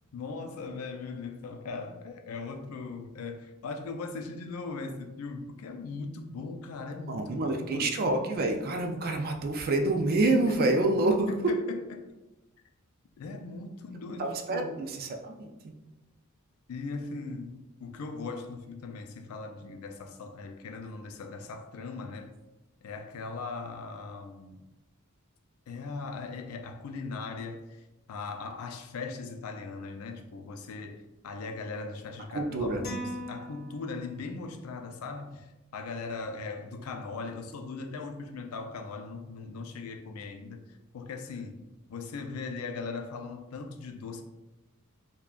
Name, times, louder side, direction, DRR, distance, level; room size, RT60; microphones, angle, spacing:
voice 1, 0.1-7.9 11.3-11.8 13.2-14.7 16.7-22.3 22.8-24.6 25.7-41.6 41.9-44.2, left 4 dB, 85° left, 0.4 m, -39 dB
voice 2, 7.1-11.3 14.2-15.7 32.3-32.8, right 2 dB, 45° right, 0.4 m, -27 dB
sound 1, 32.8-34.4, equal, 50° left, 0.8 m, -39 dB
3.6 x 2.2 x 2.3 m
head